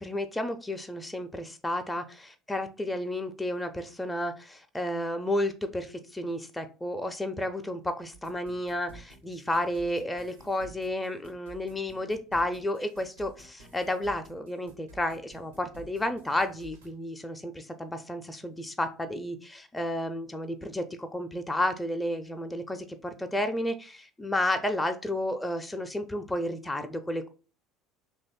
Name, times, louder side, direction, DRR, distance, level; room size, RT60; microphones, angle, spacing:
voice 1, 0.0-27.3, left 1 dB, 10° left, 6 dB, 0.4 m, -32 dB
sound 1, 8.1-16.9, right 3 dB, 80° right, 0.7 m, -52 dB
3.0 x 2.3 x 4.1 m, 0.35 s
figure-of-eight pair, 65°, 0 cm